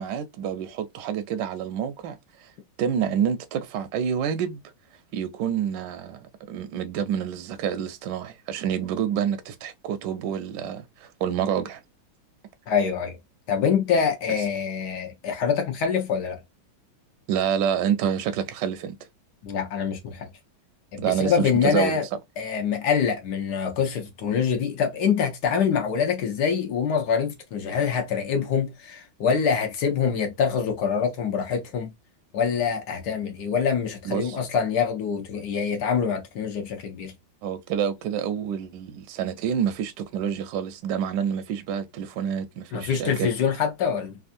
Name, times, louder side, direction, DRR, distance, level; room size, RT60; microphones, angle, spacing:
voice 1, 0.0-2.5 2.8-4.6 5.1-11.8 17.3-19.0 21.0-22.0 34.0-34.4 37.4-43.3, right 8 dB, 75° right, 1.1 m, -28 dB
voice 2, 12.7-13.2 13.5-16.4 19.4-20.3 20.9-22.1 22.4-31.9 32.3-37.1 42.7-44.2, left 6 dB, 65° left, 1.1 m, -25 dB
3.4 x 2.4 x 2.5 m
omnidirectional pair, 2.2 m